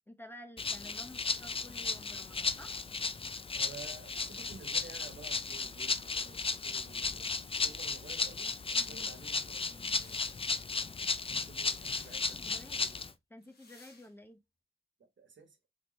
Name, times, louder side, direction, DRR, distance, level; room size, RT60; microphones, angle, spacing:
voice 1, 0.1-2.8 8.9-9.1 12.4-12.9 13.3-14.4, left 1 dB, 10° left, 0.9 m, -52 dB
Rattle (instrument), 0.6-13.1, left 4 dB, 25° left, 0.4 m, -35 dB
voice 2, 3.5-10.4 11.3-13.1 15.0-15.6, right 4 dB, 65° right, 1.3 m, -53 dB
sound 1, 9.7-10.4 11.5-12.3 13.4-14.1, left 3 dB, 50° left, 1.4 m, -59 dB
3.8 x 3.4 x 3.1 m
cardioid pair, 55°, 21 cm